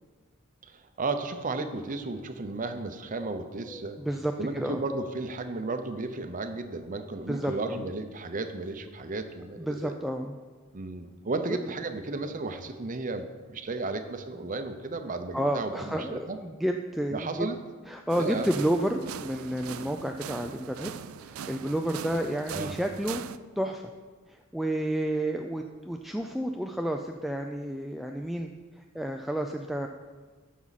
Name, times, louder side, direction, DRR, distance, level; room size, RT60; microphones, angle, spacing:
voice 1, 0.6-4.0 4.4-9.9 10.7-16.4 17.1-17.6 18.2-18.5 22.5-22.7, right 3 dB, 40° right, 8 dB, 0.7 m, -34 dB
voice 2, 3.7-4.8 7.3-7.8 9.6-10.4 15.3-17.5 17.9-20.9 21.3-23.2 23.6-23.9 24.3-28.5 28.8-29.9, right 1 dB, ahead, 3 dB, 0.3 m, -31 dB
sound 1, 18.1-23.4, right 8 dB, 90° right, 0.4 m, -41 dB
13.0 x 6.2 x 4.1 m, 1.4 s
head